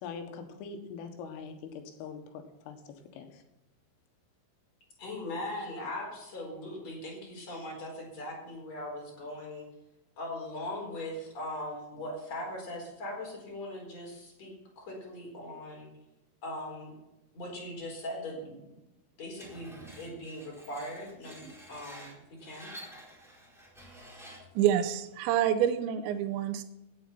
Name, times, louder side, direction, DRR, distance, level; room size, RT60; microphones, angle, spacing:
voice 1, 0.0-3.4, left 5 dB, 85° left, 6 dB, 4.1 m, -43 dB
voice 2, 5.0-9.7 10.2-14.5 14.8-15.9 16.4-16.9 17.3-18.6 19.2-22.1 22.4-22.7, left 1 dB, 35° left, -1 dB, 5.3 m, -40 dB
Screech, 19.4-24.6, equal, ahead, 3.1 m, -50 dB
voice 3, 24.6-26.6, right 10 dB, 80° right, 7 dB, 2.9 m, -27 dB
16.5 x 8.9 x 5.8 m, 0.95 s
omnidirectional pair, 5.7 m